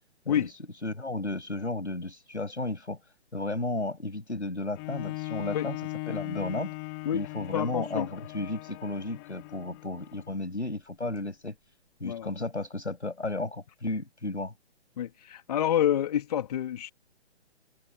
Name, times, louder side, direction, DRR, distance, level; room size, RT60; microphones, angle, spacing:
voice 1, 0.8-3.0 3.3-5.8 6.1-6.7 7.1-11.5 12.0-14.5, left 2 dB, 80° left, 6.2 m, -33 dB
Bowed string instrument, 4.8-10.4 11.0-11.1, left 29 dB, 20° left, 1.9 m, -39 dB
voice 2, 7.5-8.1 11.0-11.1 12.0-12.3 15.0-16.9, left 10 dB, 35° left, 2.5 m, -28 dB
figure-of-eight pair, 140°, 34 cm